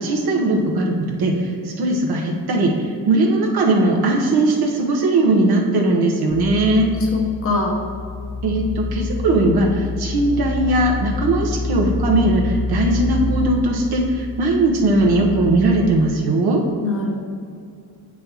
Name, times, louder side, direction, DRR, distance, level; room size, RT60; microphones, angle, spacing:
voice 1, 0.0-2.7 3.1-6.9 8.4-16.6, right 2 dB, 75° right, 0 dB, 1.2 m, -19 dB
sound 1, 6.3-16.2, left 3 dB, 80° left, 0.7 m, -27 dB
voice 2, 7.0-7.7 16.8-17.1, left 3 dB, 35° left, -1 dB, 1.0 m, -23 dB
8.4 x 6.1 x 3.0 m, 2.3 s
wide cardioid pair, 170°, 39 cm